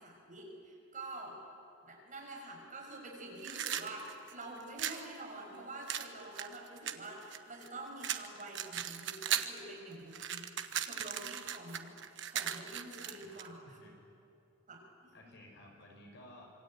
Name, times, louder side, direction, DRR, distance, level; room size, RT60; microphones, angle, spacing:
voice 1, 0.0-1.4 1.8-11.9 12.3-13.6 14.7-15.4, right 2 dB, 40° right, -1 dB, 6.7 m, -47 dB
sound 1, 3.4-5.0 5.9-7.7 8.0-9.6 9.9-13.5, right 10 dB, 65° right, 1.2 m, -37 dB
voice 2, 12.9-13.4 13.7-14.0 15.1-16.5, left 1 dB, 60° left, 0 dB, 6.5 m, -56 dB
26.0 x 23.5 x 9.2 m, 2.6 s
head